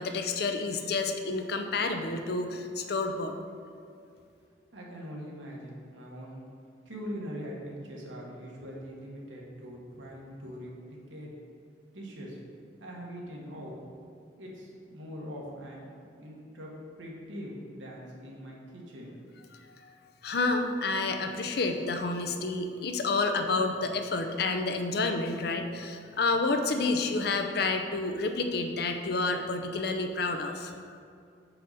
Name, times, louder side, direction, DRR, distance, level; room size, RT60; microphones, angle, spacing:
voice 1, 0.0-3.3 19.5-19.6 20.2-30.8, left 3 dB, 55° left, 5 dB, 0.5 m, -29 dB
voice 2, 4.7-6.4 6.8-11.3 11.9-12.4 12.8-13.8 14.4-15.8 16.2-16.7 17.0-19.1, equal, 85° right, -3 dB, 1.5 m, -42 dB
6.6 x 5.8 x 4.1 m, 2.3 s
head